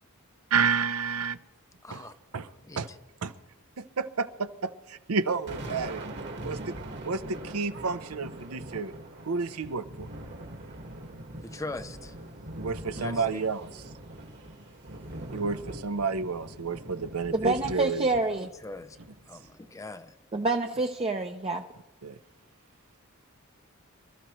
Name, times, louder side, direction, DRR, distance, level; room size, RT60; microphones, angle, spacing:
voice 1, 0.5-1.4 1.9-2.0 2.3-2.5 2.8-2.9 3.2-3.3 3.8-6.0 6.4-8.9 9.2-10.1 12.5-13.7 15.3-18.1 22.0-22.2, right 5 dB, 80° right, 0.7 m, -30 dB
voice 2, 2.6-3.0 11.4-12.2 12.9-13.4 18.6-19.0 19.3-20.1, left 2 dB, 15° left, 0.5 m, -41 dB
Thunder, 5.1-19.7, right 1 dB, 55° right, 1.8 m, -42 dB
voice 3, 17.3-18.5 20.3-21.6, right 3 dB, 25° right, 0.6 m, -27 dB
27.0 x 13.5 x 3.1 m
head